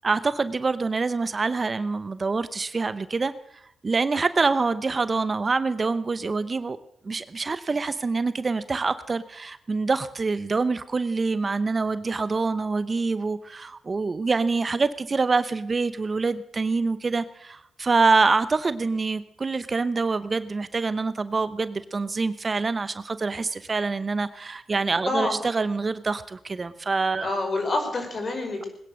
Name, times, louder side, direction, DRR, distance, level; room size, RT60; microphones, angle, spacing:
voice 1, 0.0-3.3 3.8-6.8 7.0-27.3, right 4 dB, 40° right, 14 dB, 0.8 m, -25 dB
voice 2, 25.0-25.4 27.2-28.7, left 2 dB, 45° left, 4 dB, 5.0 m, -27 dB
20.5 x 10.0 x 6.4 m, 0.76 s
cardioid pair, 65°, 0 cm